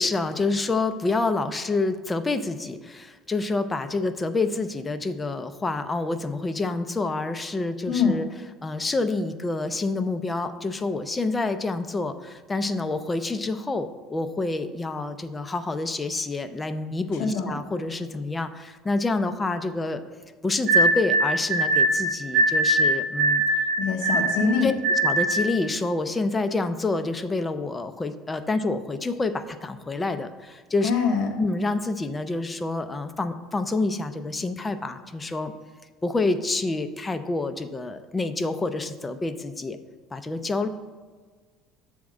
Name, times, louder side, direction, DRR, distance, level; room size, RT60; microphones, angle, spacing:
voice 1, 0.0-8.3 8.6-20.0 20.4-23.4 24.6-24.7 25.0-30.9 31.4-35.5 36.0-39.8 40.1-40.7, left 3 dB, 15° left, 9 dB, 0.4 m, -27 dB
voice 2, 7.9-8.2 17.2-17.5 23.8-24.7 30.8-31.3, left 5 dB, 65° left, 1 dB, 0.9 m, -23 dB
sound 1, 20.7-25.6, right 2 dB, 60° right, 1.0 m, -22 dB
7.5 x 3.5 x 6.2 m, 1.5 s
cardioid pair, 130°, 0 cm